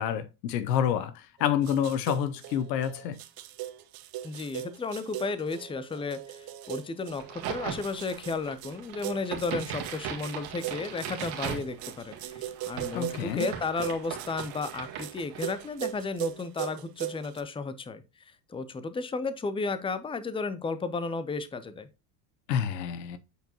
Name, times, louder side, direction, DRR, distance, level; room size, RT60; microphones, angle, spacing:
voice 1, 0.0-3.2 12.9-13.5 22.5-23.2, left 9 dB, 90° left, 0.8 m, -28 dB
sound 1, 1.4-17.4, right 13 dB, 45° right, 0.8 m, -39 dB
voice 2, 4.2-21.9, left 4 dB, 10° left, 0.6 m, -33 dB
Crack, 7.2-15.8, right 8 dB, 70° right, 1.9 m, -39 dB
8.2 x 4.5 x 2.9 m
supercardioid pair, 90°, 49 cm